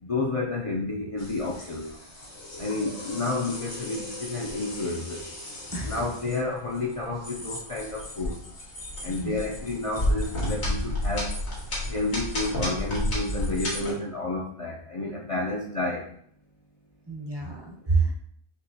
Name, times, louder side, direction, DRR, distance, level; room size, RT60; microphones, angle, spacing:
voice 1, 0.0-1.9 2.6-5.2 5.8-8.4 9.0-11.3 11.9-16.1 18.0-18.1, left 2 dB, 40° left, -3 dB, 0.5 m, -30 dB
sound 1, 1.2-13.9, left 1 dB, 80° left, 1.8 m, -33 dB
voice 2, 9.0-9.4 17.1-18.1, right 4 dB, 25° right, -2 dB, 0.7 m, -28 dB
6.2 x 2.9 x 2.7 m, 0.65 s
omnidirectional pair, 1.1 m